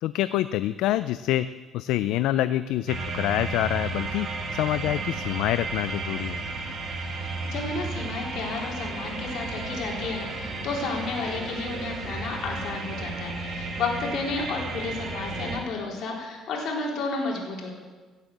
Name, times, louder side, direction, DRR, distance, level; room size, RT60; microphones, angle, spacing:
voice 1, 0.0-1.5 1.7-6.4, left 14 dB, 85° left, 14 dB, 0.4 m, -26 dB
sound 1, 2.9-15.6, right 3 dB, 50° right, 3.2 m, -33 dB
voice 2, 7.4-17.7, left 3 dB, 70° left, -1 dB, 3.7 m, -32 dB
16.0 x 8.3 x 8.0 m, 1.3 s
cardioid pair, 110°, 0 cm